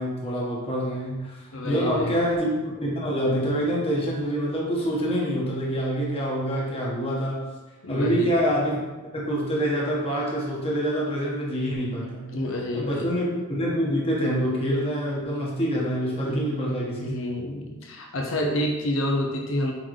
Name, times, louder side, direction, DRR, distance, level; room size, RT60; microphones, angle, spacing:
voice 1, 0.0-7.5 7.9-8.8 9.1-12.4 12.7-17.2, equal, 30° left, -5 dB, 1.4 m, -26 dB
voice 2, 1.5-2.2 7.8-8.3 12.3-13.1 16.3-16.4 17.0-19.7, left 1 dB, 75° left, 2 dB, 0.8 m, -28 dB
8.3 x 3.9 x 3.2 m, 1.2 s
head